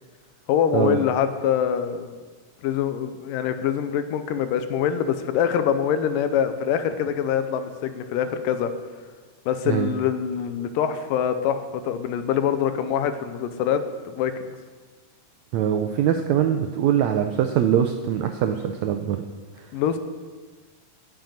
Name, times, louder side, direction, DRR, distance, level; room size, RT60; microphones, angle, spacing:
voice 1, 0.5-2.1 2.6-8.7 9.5-14.3 19.7-20.0, left 8 dB, 80° left, 10 dB, 2.4 m, -24 dB
voice 2, 15.5-19.2, right 9 dB, 85° right, 6 dB, 1.6 m, -22 dB
9.1 x 7.6 x 9.2 m, 1.4 s
omnidirectional pair, 3.9 m